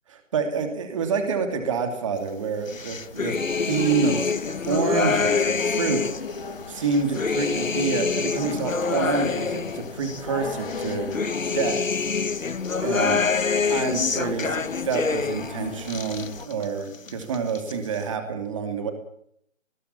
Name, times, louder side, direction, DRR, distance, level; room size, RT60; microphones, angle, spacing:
voice 1, 0.1-3.3 3.7-4.2 4.7-6.0 6.7-11.2 11.5-11.8 12.8-13.2 13.7-18.9, right 5 dB, 25° right, 6 dB, 2.8 m, -27 dB
sound 1, 2.4-16.5, left 5 dB, 45° left, 2.4 m, -35 dB
sound 2, 2.7-6.3 6.8-10.2 10.7-15.5 15.8-16.7 16.9-17.7, left 5 dB, 90° left, 1.2 m, -26 dB
20.5 x 17.0 x 8.6 m, 0.69 s
figure-of-eight pair, 160°, 38 cm